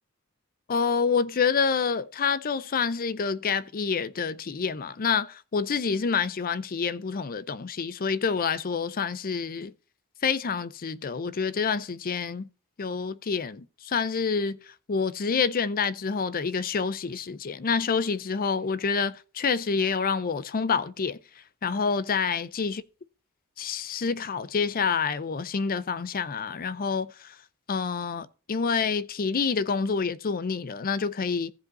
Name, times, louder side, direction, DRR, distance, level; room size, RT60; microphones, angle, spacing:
voice 1, 0.7-9.7 10.2-12.5 12.8-14.6 14.9-21.2 21.6-22.8 23.6-27.4 27.7-31.5, left 5 dB, 45° left, 0.5 m, -27 dB
14.5 x 5.3 x 4.0 m
head